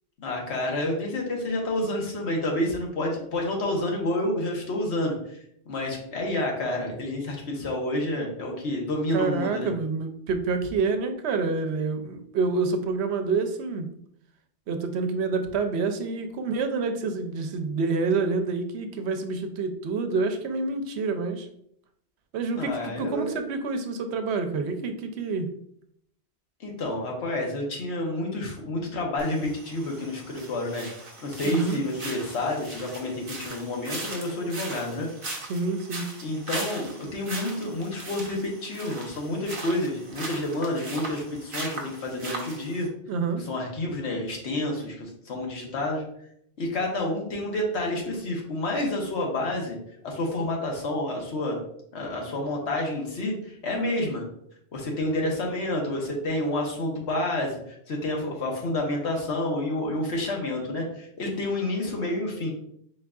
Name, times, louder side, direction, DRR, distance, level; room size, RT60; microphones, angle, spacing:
voice 1, 0.2-5.4 5.7-9.7 22.6-23.3 26.6-30.9 31.2-35.1 36.2-42.9 43.4-46.0 46.6-49.8 50.0-51.6 51.9-54.2 54.7-62.5, left 1 dB, 85° left, 0 dB, 1.3 m, -29 dB
voice 2, 9.1-13.9 14.7-21.5 22.3-25.5 31.4-31.9 35.5-36.1 43.1-43.4, right 4 dB, 80° right, 7 dB, 0.8 m, -27 dB
sound 1, 29.2-42.9, right 2 dB, 35° right, 0.7 m, -39 dB
4.5 x 3.6 x 2.3 m, 0.70 s
omnidirectional pair, 1.1 m